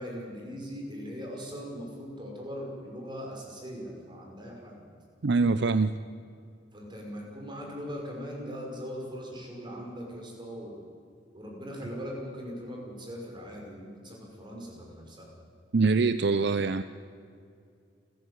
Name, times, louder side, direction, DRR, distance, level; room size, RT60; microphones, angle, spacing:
voice 1, 0.0-4.9 6.7-10.8 11.3-15.3, equal, 25° right, 0 dB, 5.7 m, -40 dB
voice 2, 5.2-5.9 15.7-16.8, right 4 dB, 60° right, 12 dB, 0.6 m, -24 dB
29.0 x 14.5 x 8.3 m, 2.4 s
head